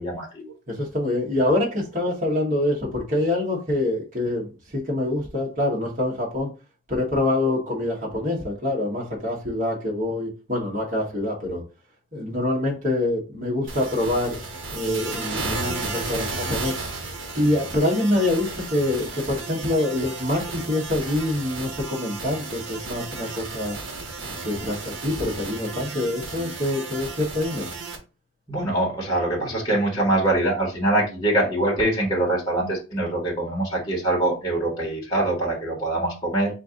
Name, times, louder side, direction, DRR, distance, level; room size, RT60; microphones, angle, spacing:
voice 1, 0.0-0.5 28.5-36.5, right 1 dB, 20° left, -3 dB, 1.4 m, -24 dB
voice 2, 0.7-4.5 4.7-6.5 6.9-11.6 12.1-14.4 14.7-16.7 17.4-23.7 24.4-27.6, left 1 dB, 40° right, -3 dB, 1.3 m, -25 dB
sound 1, 13.7-28.0, right 3 dB, 65° right, 1.0 m, -33 dB
4.3 x 2.6 x 3.7 m, 0.31 s
head